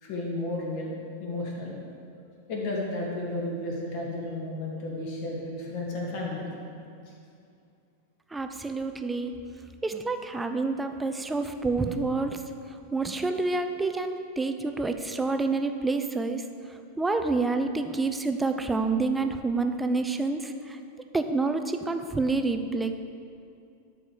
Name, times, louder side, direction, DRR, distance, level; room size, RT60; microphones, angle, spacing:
voice 1, 0.0-0.9 1.2-1.8 2.5-6.4 7.0-7.1, left 2 dB, 45° left, -3 dB, 2.6 m, -33 dB
voice 2, 8.3-9.4 9.8-12.4 12.9-20.8 21.1-23.1, right 3 dB, 10° right, 7 dB, 0.7 m, -28 dB
12.5 x 4.9 x 7.0 m, 2.5 s
figure-of-eight pair, 90°, 0 cm